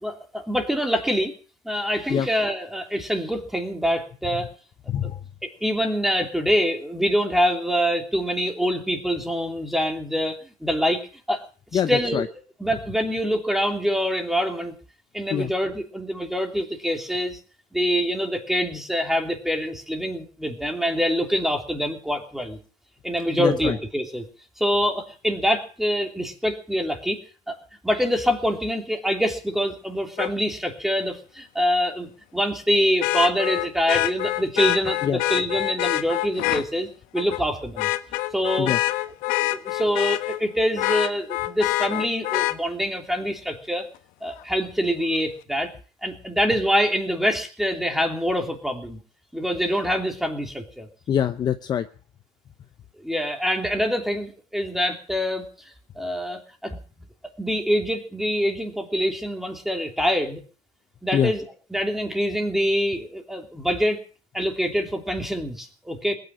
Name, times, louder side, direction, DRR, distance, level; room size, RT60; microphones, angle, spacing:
voice 1, 0.0-1.3 1.6-4.5 5.4-11.4 11.7-12.3 12.6-14.7 15.1-17.4 17.7-22.6 23.0-24.2 24.6-27.2 27.5-27.6 27.8-36.9 37.1-37.9 38.3-38.7 39.4-43.9 44.2-45.7 46.0-49.0 49.3-50.9 53.0-55.5 56.0-56.8 57.4-60.4 61.0-61.4 61.7-64.0 64.3-66.2, equal, ahead, 4 dB, 3.0 m, -25 dB
voice 2, 4.9-5.2 11.7-12.3 15.3-15.5 23.4-23.8 35.0-35.2 38.6-38.8 51.1-51.9 61.1-61.3, left 9 dB, 30° left, 9 dB, 0.9 m, -24 dB
Vehicle horn car horn honking, 30.2-30.3 33.0-36.6 37.2-37.4 37.8-40.4 40.8-42.6 44.4-44.5, left 17 dB, 65° left, 1.4 m, -25 dB
20.0 x 9.6 x 7.5 m, 0.40 s
cardioid pair, 145°, 15 cm